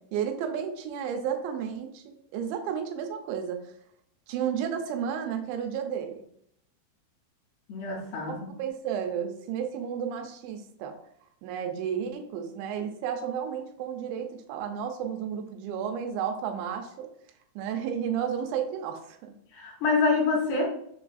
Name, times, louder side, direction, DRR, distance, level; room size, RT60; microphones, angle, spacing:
voice 1, 0.1-3.6 4.3-6.3 8.2-10.9 11.4-17.1 17.6-19.3, right 8 dB, 90° right, 5 dB, 2.8 m, -32 dB
voice 2, 7.7-8.6 19.5-20.7, left 4 dB, 80° left, -1 dB, 2.6 m, -26 dB
6.6 x 2.5 x 2.3 m, 0.71 s
omnidirectional pair, 5.0 m